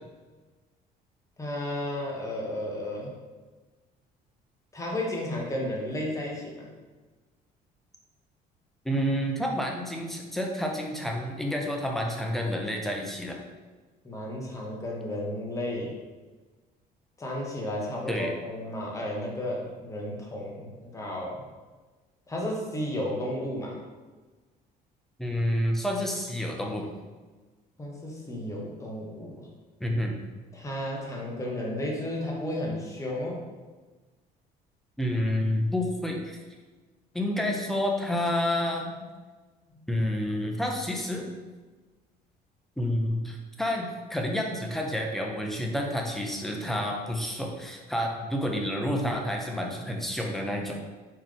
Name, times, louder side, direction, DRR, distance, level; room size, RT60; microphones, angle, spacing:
voice 1, 1.4-3.1 4.7-6.7 14.0-15.9 17.2-21.4 22.3-23.8 27.8-29.5 30.5-33.4 37.4-37.5 39.7-39.8, left 1 dB, 20° left, -3 dB, 1.2 m, -33 dB
voice 2, 8.8-13.4 18.1-18.3 25.2-26.9 29.8-30.2 35.0-36.4 37.1-39.0 39.9-41.3 42.8-50.8, left 1 dB, ahead, 0 dB, 0.7 m, -29 dB
4.3 x 3.2 x 3.7 m, 1.3 s
cardioid pair, 110°, 17 cm